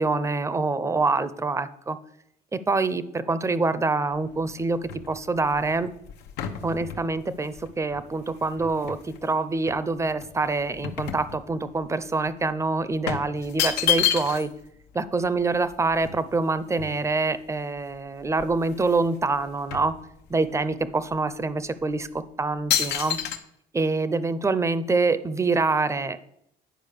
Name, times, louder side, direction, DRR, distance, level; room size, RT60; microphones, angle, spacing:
voice 1, 0.0-2.0 2.5-4.8 5.1-5.9 6.6-14.5 14.9-19.9 20.3-23.2 23.7-26.3, right 3 dB, 15° right, 14 dB, 0.6 m, -25 dB
sound 1, 4.1-9.2 9.7-11.8 12.1-12.3 13.1-14.6 14.9-15.0 15.2-17.4 17.9-18.0 18.3-19.1 19.3-20.6 21.1-21.3 21.9-22.2 22.7-23.4, left 9 dB, 85° left, 1.0 m, -30 dB
10.0 x 5.1 x 6.6 m, 0.75 s
cardioid pair, 110°, 17 cm